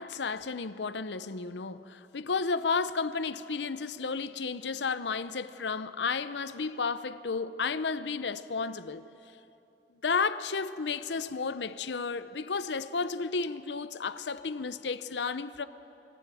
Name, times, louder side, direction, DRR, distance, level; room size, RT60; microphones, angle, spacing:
voice 1, 0.0-9.0 10.0-15.7, left 4 dB, 75° left, 0.7 m, -32 dB
25.0 x 14.5 x 9.1 m
head